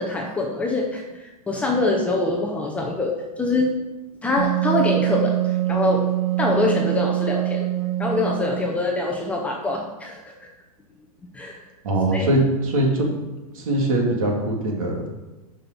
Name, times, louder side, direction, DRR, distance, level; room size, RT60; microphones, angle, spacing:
voice 1, 0.0-3.8 4.2-6.0 6.4-7.7 8.0-10.5 11.3-11.6 12.1-12.3, left 2 dB, 5° left, 0 dB, 0.6 m, -24 dB
Wind instrument woodwind instrument, 4.4-8.8, right 15 dB, 75° right, 0.8 m, -24 dB
voice 2, 11.8-13.1 13.5-15.1, right 1 dB, 60° right, 0 dB, 2.6 m, -21 dB
9.0 x 5.6 x 5.3 m, 1.1 s
hypercardioid pair, 160°, 20 cm